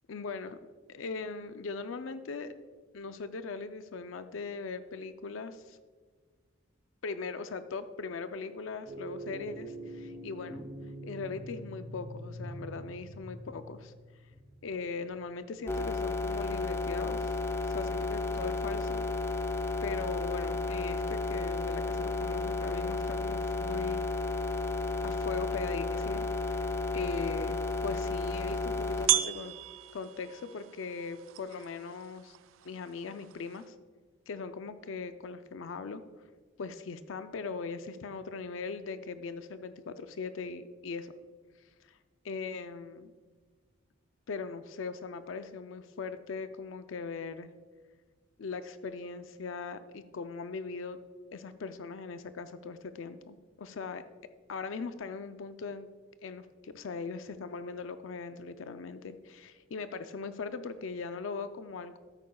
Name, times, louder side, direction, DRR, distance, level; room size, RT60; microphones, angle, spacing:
voice 1, 0.1-0.6 0.9-2.5 2.9-5.8 7.0-10.6 11.0-13.9 14.6-17.3 17.7-19.0 19.8-24.0 25.0-26.7 26.9-27.6 27.8-29.5 29.9-32.4 32.6-33.7 34.3-36.0 36.6-41.1 41.9-42.0 42.2-43.1 44.3-47.5 48.4-51.0 51.3-54.0 54.5-55.9 56.2-62.0, left 4 dB, 80° left, 11 dB, 0.4 m, -40 dB
sound 1, 8.9-15.5, right 1 dB, 35° right, 1.2 m, -44 dB
sound 2, 15.7-29.1, left 3 dB, 15° left, 0.3 m, -32 dB
sound 3, 27.0-33.7, right 13 dB, 85° right, 0.4 m, -37 dB
13.5 x 8.5 x 2.3 m, 1.5 s
head